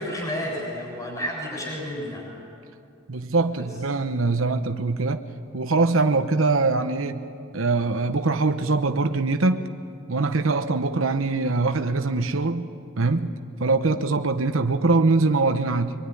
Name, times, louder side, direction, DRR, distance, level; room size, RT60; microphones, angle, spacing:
voice 1, 0.0-2.3 3.5-3.7, equal, 20° left, -4 dB, 7.1 m, -31 dB
voice 2, 3.1-5.2 5.5-7.2 7.5-9.6 10.1-12.7 13.0-13.3 13.6-15.9, right 3 dB, 80° right, 7 dB, 1.0 m, -22 dB
24.5 x 24.0 x 9.9 m, 2.4 s
head